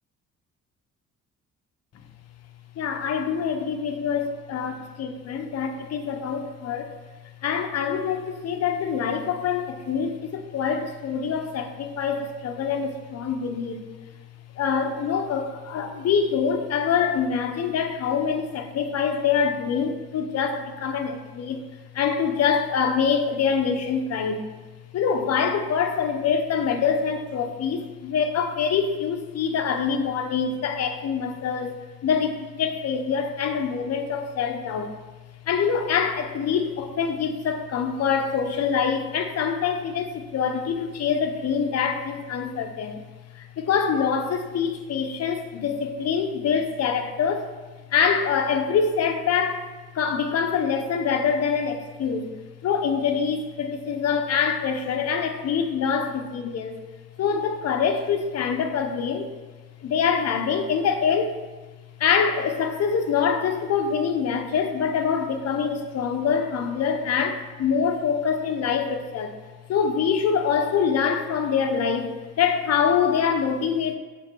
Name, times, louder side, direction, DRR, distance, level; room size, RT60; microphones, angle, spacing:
voice 1, 2.8-6.9 7.4-13.8 14.6-21.6 21.9-24.5 24.9-34.9 35.5-43.0 43.3-47.5 47.9-49.7 49.9-52.3 52.6-56.8 57.2-59.3 59.8-61.4 62.0-69.3 69.7-74.0, left 6 dB, 55° left, 5 dB, 0.8 m, -25 dB
7.8 x 3.9 x 4.5 m, 1.3 s
cardioid pair, 90°, 30 cm